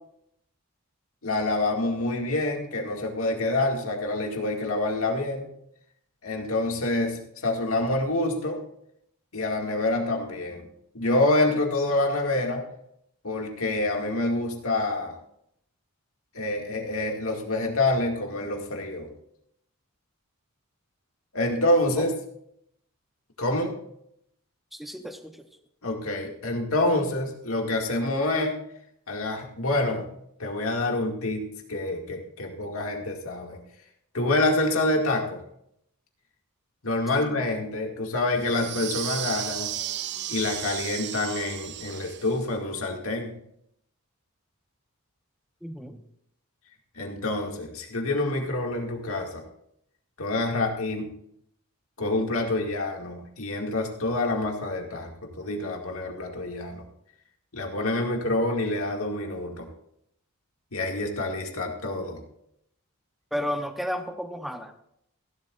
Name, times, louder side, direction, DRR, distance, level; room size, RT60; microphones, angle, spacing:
voice 1, 1.2-5.5 6.2-8.6 9.3-10.7 10.9-12.6 13.2-15.2 16.3-19.1 21.3-22.1 23.4-23.8 25.8-28.5 29.1-30.0 30.4-31.4 31.7-33.6 34.1-35.4 36.8-39.7 40.3-43.3 47.0-49.4 50.2-51.1 52.0-56.8 57.5-59.7 60.7-62.2, left 2 dB, 70° left, 1 dB, 2.3 m, -27 dB
voice 2, 24.7-25.5 37.1-37.4 45.6-46.0 63.3-64.8, equal, ahead, 6 dB, 0.9 m, -33 dB
sound 1, 38.4-42.4, right 12 dB, 50° right, 0.6 m, -34 dB
16.0 x 11.5 x 2.6 m, 0.73 s
head